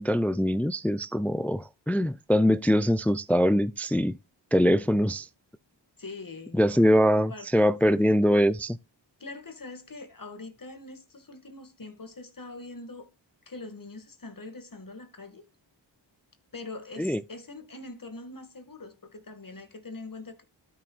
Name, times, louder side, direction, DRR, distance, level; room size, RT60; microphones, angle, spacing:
voice 1, 0.0-4.2 4.5-5.3 6.5-8.8 17.0-17.2, equal, 5° left, 0.4 m, -23 dB
voice 2, 6.0-6.8 7.3-8.2 9.2-13.1 13.5-15.5 16.5-20.4, left 3 dB, 45° left, 2.2 m, -43 dB
12.5 x 6.3 x 2.5 m
cardioid pair, 45°, 47 cm